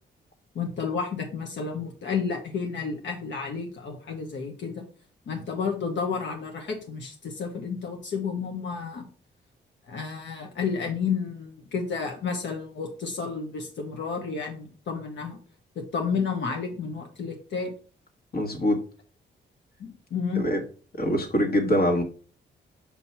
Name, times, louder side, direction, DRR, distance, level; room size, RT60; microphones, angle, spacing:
voice 1, 0.5-4.9 5.3-9.0 9.9-15.4 15.8-17.7 19.8-20.5, left 5 dB, 75° left, 2 dB, 1.0 m, -31 dB
voice 2, 18.3-18.8 20.4-20.6 21.0-22.0, equal, 55° left, 3 dB, 1.7 m, -23 dB
6.0 x 2.8 x 5.5 m, 0.40 s
cardioid pair, 80°, 19 cm